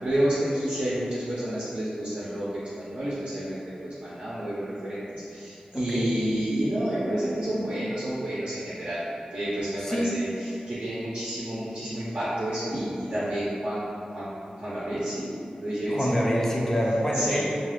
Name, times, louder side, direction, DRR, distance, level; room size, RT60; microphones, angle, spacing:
voice 1, 0.0-9.0 9.3-10.3 10.7-14.3 14.6-15.3 15.6-16.0 17.1-17.4, right 1 dB, 50° right, -10 dB, 0.6 m, -30 dB
voice 2, 5.7-6.1 9.8-10.1 15.9-17.4, equal, 15° left, -3 dB, 0.4 m, -26 dB
2.3 x 2.3 x 3.1 m, 2.6 s
wide cardioid pair, 110°, 3 cm